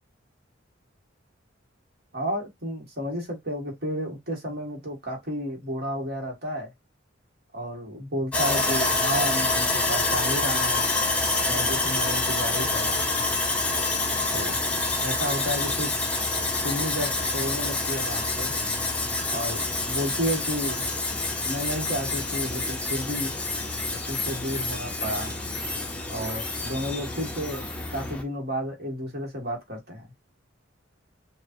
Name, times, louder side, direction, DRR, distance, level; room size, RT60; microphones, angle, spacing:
voice 1, 2.1-6.7 7.5-10.9 11.5-13.3 14.3-14.6 15.0-15.9 16.6-18.6 19.3-20.8 21.4-23.3 24.1-25.4 26.1-27.6 27.9-30.1, equal, 50° right, 1.8 m, -32 dB
Sawing, 8.3-28.2, left 2 dB, 5° left, 0.7 m, -27 dB
6.3 x 2.5 x 2.6 m
head